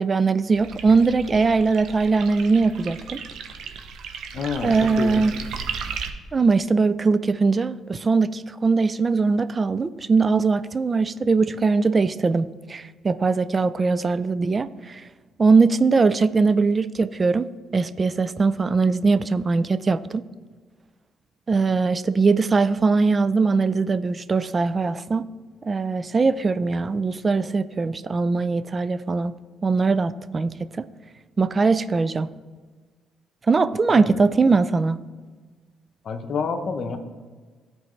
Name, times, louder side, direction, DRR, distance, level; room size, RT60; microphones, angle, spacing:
voice 1, 0.0-3.2 4.6-5.3 6.3-15.0 15.4-20.2 21.5-25.3 25.6-29.3 29.6-30.8 31.4-32.3 33.5-35.0, right 4 dB, 35° right, 14 dB, 0.4 m, -21 dB
sound 1, 0.5-6.1, right 6 dB, 70° right, 0.7 m, -35 dB
voice 2, 4.3-5.2 33.9-34.2 36.0-37.0, left 5 dB, 60° left, 7 dB, 0.9 m, -28 dB
13.0 x 4.6 x 3.2 m, 1.4 s
supercardioid pair, 60°, 0 cm